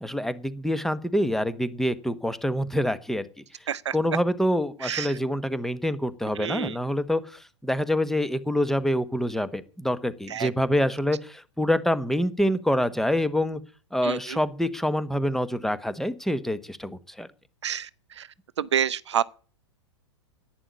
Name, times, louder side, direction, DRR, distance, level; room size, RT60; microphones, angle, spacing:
voice 1, 0.0-3.3 3.9-13.6 13.9-17.3, equal, ahead, 1.1 m, -26 dB
voice 2, 6.4-6.8 10.3-10.5 14.0-14.4 17.6-17.9 18.2-18.3 18.6-19.2, right 9 dB, 70° right, 0.6 m, -28 dB
11.0 x 9.6 x 8.3 m
figure-of-eight pair, 100°, 15 cm